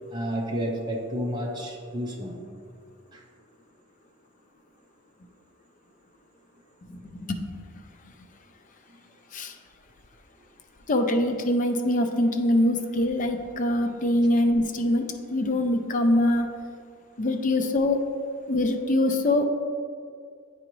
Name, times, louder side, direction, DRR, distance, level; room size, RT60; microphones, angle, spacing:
voice 1, 0.1-2.4 3.1-3.2, equal, 20° right, -1 dB, 0.6 m, -31 dB
voice 2, 7.1-7.4 9.3-9.6 10.9-16.5 17.2-18.0 18.5-19.5, left 1 dB, 35° left, 6 dB, 0.4 m, -23 dB
9.3 x 3.9 x 3.0 m, 2.2 s
head